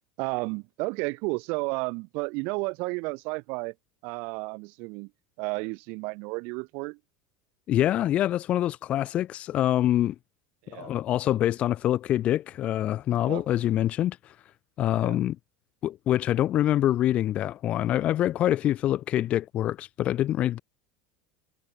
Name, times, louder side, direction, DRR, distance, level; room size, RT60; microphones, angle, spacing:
voice 1, 0.2-3.7 4.0-5.1 5.4-7.0 10.6-10.9 13.1-13.4 14.9-15.2, right 30 dB, 60° right, 1.0 m, -32 dB
voice 2, 7.7-10.2 10.7-14.3 14.8-15.4 15.8-20.6, left 12 dB, 35° left, 0.6 m, -25 dB
supercardioid pair, 135°, 3 cm